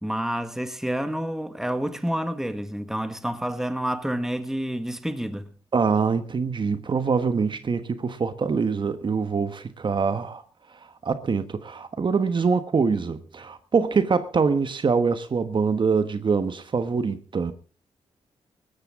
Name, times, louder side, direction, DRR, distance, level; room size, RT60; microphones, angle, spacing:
voice 1, 0.0-5.5, right 1 dB, 5° right, 1.7 m, -29 dB
voice 2, 5.7-10.4 11.0-17.5, right 5 dB, 45° right, 1.2 m, -24 dB
20.0 x 13.5 x 3.7 m
cardioid pair, 80°, 11 cm